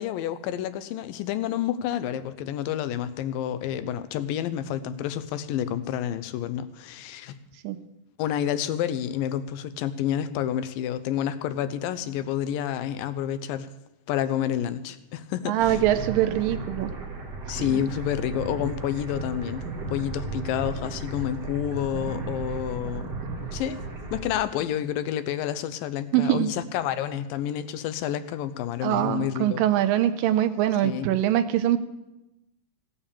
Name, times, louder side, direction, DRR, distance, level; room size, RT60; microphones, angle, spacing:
voice 1, 0.0-7.4 8.2-13.7 14.1-15.8 17.5-23.1 23.5-23.8 24.1-29.6 30.8-31.1, left 10 dB, 85° left, 12 dB, 2.4 m, -29 dB
voice 2, 15.5-16.9 17.6-17.7 26.1-26.5 28.8-31.8, right 12 dB, 90° right, 10 dB, 2.3 m, -23 dB
sound 1, 15.6-24.3, right 3 dB, 35° right, 2.0 m, -35 dB
15.5 x 7.1 x 7.0 m, 0.96 s
omnidirectional pair, 4.0 m